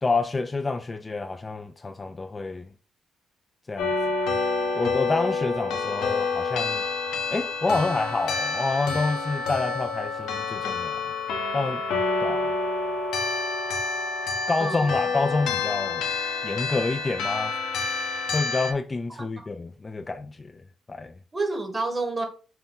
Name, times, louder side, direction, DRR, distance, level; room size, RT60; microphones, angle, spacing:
voice 1, 0.0-2.7 3.7-3.9 4.7-6.8 7.3-11.1 11.5-11.8 12.2-12.5 14.5-16.0 16.4-17.6 18.3-20.6 20.9-21.1, left 3 dB, 25° left, 0.3 m, -28 dB
sound 1, 3.8-18.7, left 4 dB, 80° left, 0.9 m, -28 dB
voice 2, 14.6-15.0 19.1-19.5 21.3-22.3, right 3 dB, 20° right, 1.4 m, -30 dB
5.9 x 2.2 x 3.8 m
cardioid pair, 90°, 0 cm